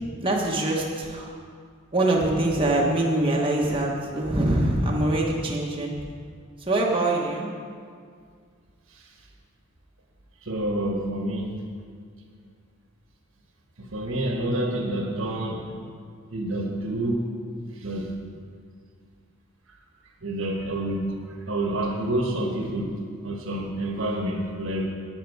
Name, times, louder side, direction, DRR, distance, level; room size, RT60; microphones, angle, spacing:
voice 1, 0.2-1.3 1.9-6.0 6.7-7.5, right 1 dB, 25° right, -3 dB, 1.2 m, -24 dB
voice 2, 10.4-11.6 13.8-15.7 16.3-17.2 17.7-18.2 20.2-24.9, right 1 dB, 65° right, 1 dB, 1.3 m, -28 dB
10.5 x 9.2 x 4.7 m, 2.1 s
head